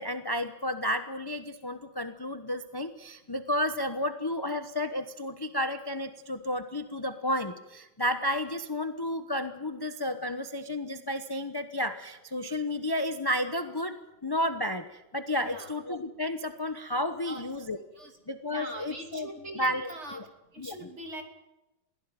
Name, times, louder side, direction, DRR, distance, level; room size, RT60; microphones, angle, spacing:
voice 1, 0.0-13.9 14.2-17.8 18.3-19.3 19.6-19.9 20.1-20.3 20.6-20.9, left 1 dB, 20° left, 9 dB, 0.5 m, -32 dB
voice 2, 15.4-15.7 17.2-17.4 18.0-18.1 18.5-20.2 20.5-21.2, right 1 dB, 35° right, 5 dB, 3.1 m, -41 dB
22.0 x 16.5 x 9.0 m, 0.98 s
omnidirectional pair, 2.2 m